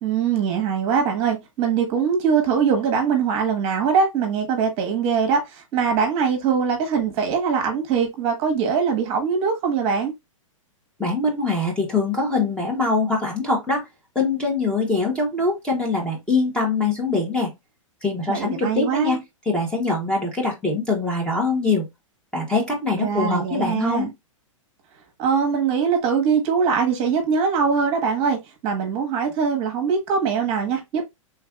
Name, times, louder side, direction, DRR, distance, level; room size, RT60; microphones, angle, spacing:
voice 1, 0.0-10.1 18.3-19.2 22.9-24.1 25.2-31.0, right 6 dB, 35° right, 1.2 m, -22 dB
voice 2, 11.0-13.8 14.1-17.5 18.0-19.2 19.5-21.8 22.3-24.1, left 3 dB, 5° left, 1.0 m, -23 dB
3.4 x 3.3 x 2.3 m
hypercardioid pair, 130°, 17 cm